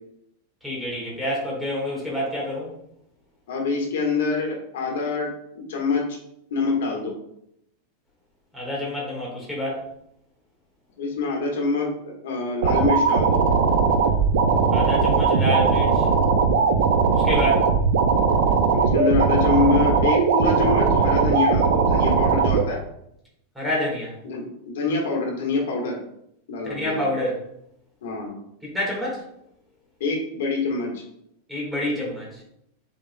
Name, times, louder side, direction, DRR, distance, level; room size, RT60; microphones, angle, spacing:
voice 1, 0.6-2.7 8.5-9.9 14.7-16.1 17.1-17.7 23.5-24.1 26.6-27.4 28.6-29.2 31.5-32.4, equal, ahead, -5 dB, 1.6 m, -27 dB
voice 2, 3.5-6.2 6.5-7.2 11.0-11.9 12.2-13.4 17.2-17.4 18.7-22.8 24.2-26.0 26.5-27.1 28.0-28.4 30.0-31.0, left 4 dB, 80° left, 0 dB, 1.4 m, -25 dB
sound 1, 12.6-22.6, right 5 dB, 75° right, 0.6 m, -19 dB
6.5 x 3.7 x 2.2 m, 0.77 s
supercardioid pair, 160°, 0 cm